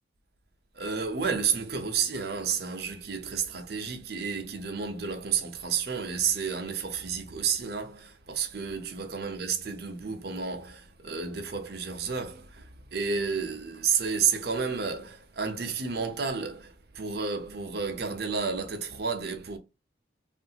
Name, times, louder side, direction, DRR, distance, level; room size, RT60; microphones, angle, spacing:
voice 1, 0.7-19.6, right 6 dB, 55° right, 0.7 m, -31 dB
3.1 x 2.5 x 2.8 m
head